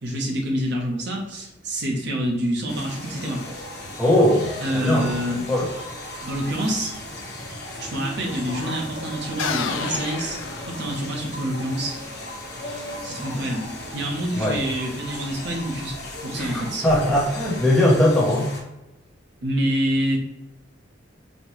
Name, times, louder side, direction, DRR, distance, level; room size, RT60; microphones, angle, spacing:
voice 1, 0.0-3.4 4.6-5.4 6.2-6.9 7.8-12.0 12.7-16.0 16.2-16.9 19.4-20.2, equal, 60° right, 0 dB, 0.8 m, -27 dB
sound 1, 2.7-18.6, left 1 dB, 60° left, 1.0 m, -36 dB
voice 2, 4.0-5.1 5.5-5.7 14.3-14.6 16.4-18.5, left 1 dB, ahead, -5 dB, 0.7 m, -20 dB
sound 2, 9.4-11.3, left 6 dB, 85° left, 0.4 m, -30 dB
4.2 x 2.2 x 3.0 m, 0.94 s
head